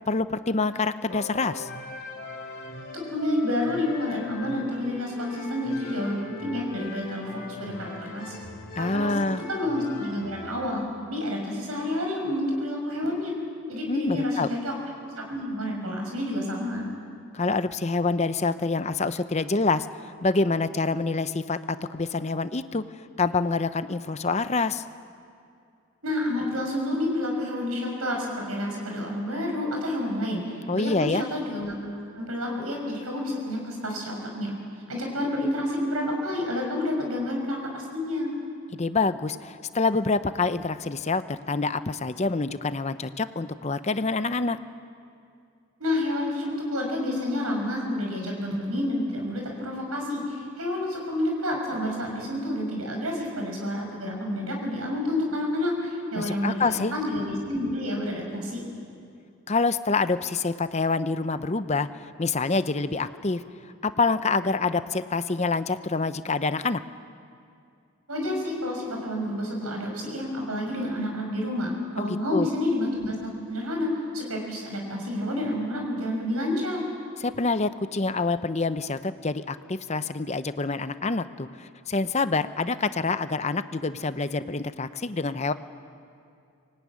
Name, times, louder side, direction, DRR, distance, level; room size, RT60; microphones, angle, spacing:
voice 1, 0.1-1.7 8.8-9.4 13.9-14.5 17.3-24.8 30.7-31.2 38.7-44.6 56.2-56.9 59.5-61.9 62.2-63.4 63.8-66.8 72.0-72.5 77.2-85.5, left 3 dB, 30° left, 12 dB, 0.6 m, -26 dB
sound 1, 1.1-10.7, left 3 dB, 50° left, 3.1 m, -40 dB
voice 2, 2.9-8.3 8.8-9.1 9.5-13.3 13.7-16.9 26.0-31.7 32.1-34.5 34.9-38.3 45.8-58.6 68.1-73.9 74.1-76.9, left 1 dB, 85° right, 1 dB, 6.3 m, -29 dB
24.5 x 18.0 x 9.6 m, 2.4 s
head